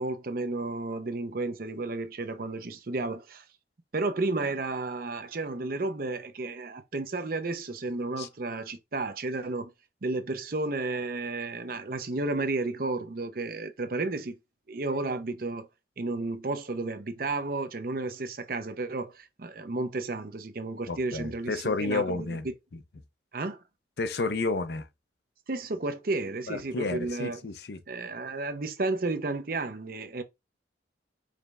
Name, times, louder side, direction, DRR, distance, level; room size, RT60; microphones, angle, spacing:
voice 1, 0.0-3.4 3.9-9.7 10.0-14.4 14.7-15.7 16.0-22.5 23.3-23.6 25.5-27.4 27.9-30.2, right 3 dB, 50° right, 0.6 m, -32 dB
voice 2, 20.9-22.5 24.0-24.9 26.5-27.8, left 3 dB, 60° left, 0.6 m, -31 dB
4.9 x 3.2 x 2.3 m
head